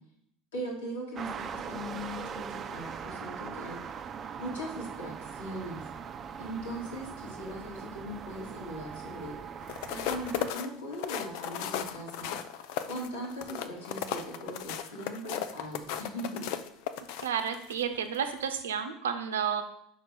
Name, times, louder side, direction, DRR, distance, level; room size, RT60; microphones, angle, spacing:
voice 1, 0.5-3.8 4.4-5.8 6.4-9.4 9.9-12.4 12.8-16.5, equal, 90° left, -4 dB, 2.4 m, -39 dB
sound 1, 1.2-10.5, right 7 dB, 35° right, 0.5 m, -41 dB
sound 2, 9.6-17.8 18.3-18.5, left 10 dB, 70° left, 0.5 m, -36 dB
voice 2, 17.2-19.6, right 8 dB, 90° right, 8 dB, 0.7 m, -31 dB
4.8 x 4.6 x 5.9 m, 0.73 s
hypercardioid pair, 85°, 0 cm